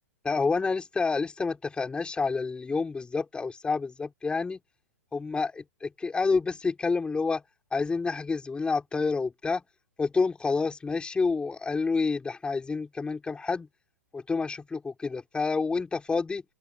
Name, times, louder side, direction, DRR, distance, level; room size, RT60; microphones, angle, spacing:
voice 1, 0.2-4.6 5.1-7.4 7.7-9.6 10.0-13.7 14.1-16.4, left 4 dB, 10° left, 4.5 m, -28 dB
open air
figure-of-eight pair, 110°, 9 cm